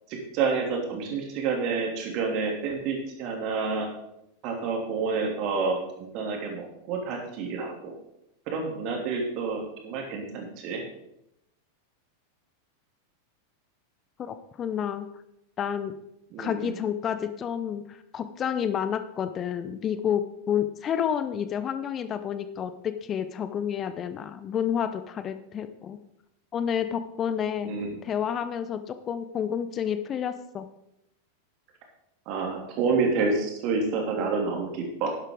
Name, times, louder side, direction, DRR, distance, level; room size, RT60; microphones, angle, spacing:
voice 1, 0.1-3.9 4.4-7.9 8.5-10.8 16.3-16.7 27.6-28.0 32.3-35.1, right 4 dB, 40° right, 1 dB, 3.0 m, -29 dB
voice 2, 14.2-15.1 15.6-15.9 16.4-26.0 26.5-27.8 28.0-30.7, left 8 dB, 25° left, 11 dB, 0.8 m, -30 dB
11.0 x 11.0 x 3.9 m, 0.82 s
figure-of-eight pair, 90°, 0 cm